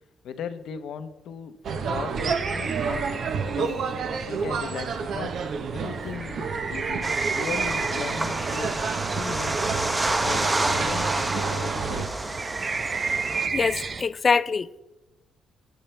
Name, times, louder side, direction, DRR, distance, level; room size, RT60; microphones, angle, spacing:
voice 1, 0.2-3.1 3.5-3.8 4.1-5.4 5.7-8.8 9.1-9.8 10.1-12.3, left 7 dB, 75° left, 0.9 m, -38 dB
sound 1, 1.6-12.1, right 5 dB, 65° right, 1.0 m, -30 dB
sound 2, 2.2-14.0, right 5 dB, 40° right, 0.7 m, -33 dB
sound 3, 7.0-13.5, right 2 dB, 20° right, 1.2 m, -29 dB
voice 2, 13.5-14.8, left 5 dB, 40° left, 0.4 m, -24 dB
19.5 x 9.0 x 3.4 m
cardioid pair, 90°, 0 cm